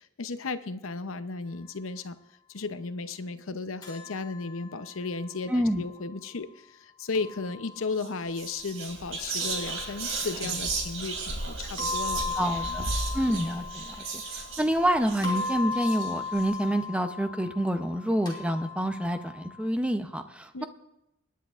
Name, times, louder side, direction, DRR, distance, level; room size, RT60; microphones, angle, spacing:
voice 1, 0.0-2.2 2.5-6.5 6.8-12.8 20.5-20.6, left 3 dB, 75° left, 11 dB, 0.7 m, -35 dB
sound 1, 3.8-5.9 7.1-8.1 9.4-10.6 11.8-14.9 15.2-19.6, left 4 dB, 20° left, 3.0 m, -37 dB
voice 2, 5.5-5.8 12.3-20.6, equal, 5° right, 7 dB, 0.7 m, -28 dB
Whispering, 7.9-8.1 8.3-16.4, right 3 dB, 80° right, 2.9 m, -35 dB
24.5 x 10.0 x 2.5 m, 0.90 s
head